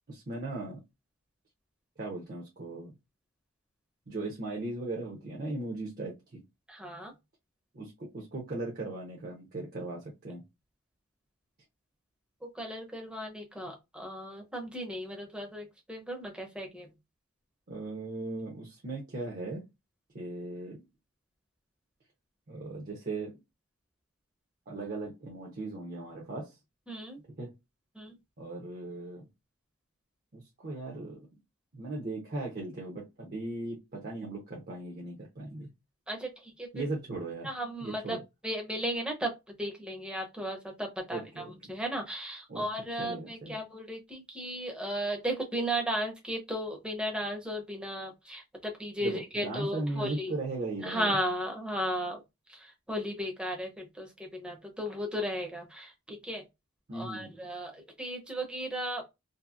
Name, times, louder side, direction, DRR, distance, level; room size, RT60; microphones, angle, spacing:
voice 1, 0.1-0.8 2.0-2.9 4.1-6.4 7.7-10.4 17.7-19.6 20.1-20.8 22.5-23.4 24.7-26.5 27.4-27.5 28.4-29.3 30.3-31.3 31.7-35.7 36.7-37.5 37.8-38.2 41.1-41.5 42.5-42.6 43.0-43.6 49.0-51.2 56.9-57.3, right 2 dB, 40° right, 0.6 m, -38 dB
voice 2, 6.7-7.1 12.5-16.9 26.9-27.2 27.9-28.2 36.1-36.9 37.4-38.2 38.4-50.3 50.8-52.2 52.5-56.4 56.9-59.0, equal, 5° right, 0.6 m, -35 dB
2.7 x 2.5 x 2.4 m
head